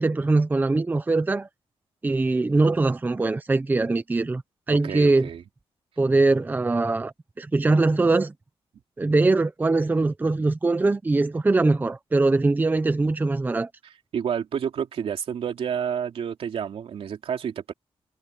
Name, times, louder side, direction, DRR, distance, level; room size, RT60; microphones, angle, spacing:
voice 1, 0.0-1.5 2.0-4.4 4.7-5.3 6.0-8.3 9.0-13.7, right 3 dB, 20° right, 0.7 m, -22 dB
voice 2, 4.7-5.4 14.1-17.7, right 8 dB, 75° right, 3.0 m, -29 dB
wide cardioid pair, 150°, 10 cm